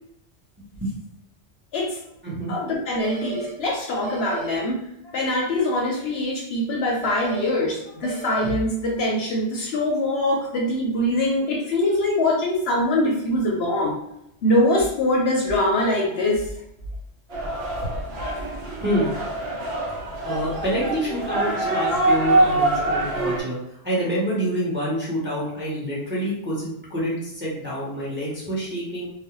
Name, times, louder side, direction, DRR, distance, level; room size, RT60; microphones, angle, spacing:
voice 1, 2.5-4.8 5.1-14.0 14.4-16.4, left 1 dB, 65° left, -1 dB, 0.7 m, -23 dB
sound 1, 3.0-3.5 4.0-4.5 7.0-7.5 8.0-8.5, right 3 dB, 75° right, 0.3 m, -34 dB
sound 2, 17.3-23.4, right 2 dB, 60° right, 1.0 m, -24 dB
voice 2, 20.2-23.6 23.8-29.1, equal, 15° right, -6 dB, 0.5 m, -27 dB
2.4 x 2.1 x 2.9 m, 0.79 s
omnidirectional pair, 1.2 m